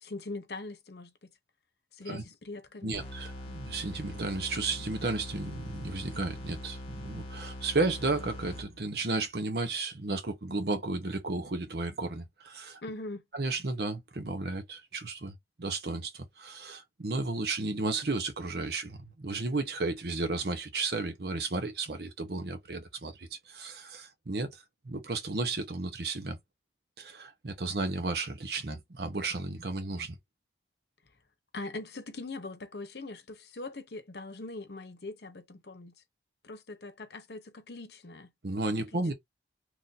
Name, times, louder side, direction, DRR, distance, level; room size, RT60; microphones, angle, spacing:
voice 1, 0.0-1.3 1.9-3.0 12.8-13.2 31.5-35.9 36.4-38.3 38.9-39.1, left 2 dB, 70° left, 0.8 m, -42 dB
voice 2, 2.8-12.8 13.3-26.4 27.0-30.2 38.4-39.1, right 3 dB, 65° right, 0.9 m, -33 dB
sound 1, 2.9-9.0, left 1 dB, 35° left, 1.0 m, -42 dB
3.0 x 2.6 x 3.9 m
head